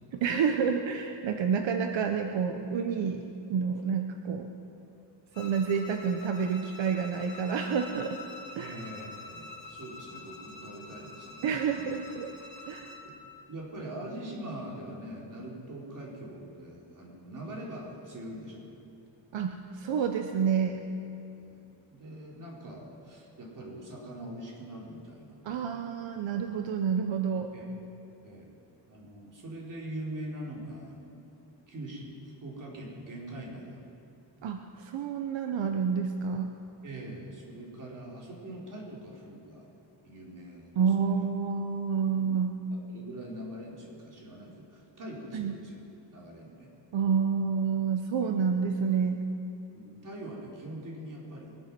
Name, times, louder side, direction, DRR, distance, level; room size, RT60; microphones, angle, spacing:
voice 1, 0.1-3.2 3.5-4.5 5.4-8.2 8.5-8.7 11.4-12.3 12.7-12.9 19.3-20.8 25.4-27.5 34.4-36.5 40.8-42.6 45.3-45.5 46.9-49.2, right 6 dB, 85° right, 5 dB, 1.0 m, -29 dB
Bowed string instrument, 5.3-13.1, left 3 dB, 85° left, 2.4 m, -46 dB
voice 2, 8.6-11.9 13.0-13.2 13.5-18.6 21.4-21.6 21.9-25.6 27.5-27.6 28.2-28.5 28.9-31.2 31.7-33.8 36.8-39.7 40.0-41.1 42.2-42.3 42.9-45.8 46.1-46.7 49.7-51.5, right 1 dB, 45° right, -3 dB, 4.0 m, -43 dB
23.5 x 9.2 x 6.1 m, 2.6 s
wide cardioid pair, 130°, 44 cm